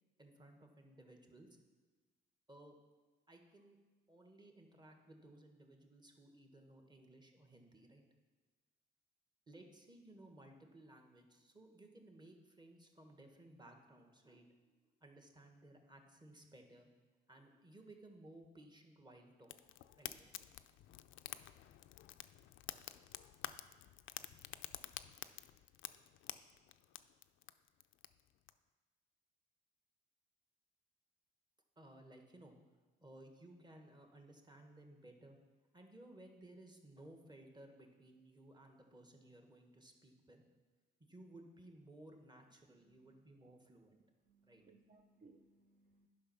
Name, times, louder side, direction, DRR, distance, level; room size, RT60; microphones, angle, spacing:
voice 1, 0.2-1.5 2.5-2.8 3.3-3.8 4.1-8.0 9.5-14.5 15.0-16.9 17.3-19.5 20.0-20.6 31.8-32.6 33.0-35.4 35.7-40.4 41.1-44.0 44.4-44.6, right 1 dB, 20° right, 3 dB, 1.4 m, -59 dB
Fire, 19.4-28.5, left 13 dB, 85° left, 0.4 m, -50 dB
voice 2, 42.8-43.2 44.2-46.1, right 3 dB, 40° right, 3 dB, 0.7 m, -66 dB
10.0 x 5.4 x 5.8 m, 1.3 s
cardioid pair, 90°, 20 cm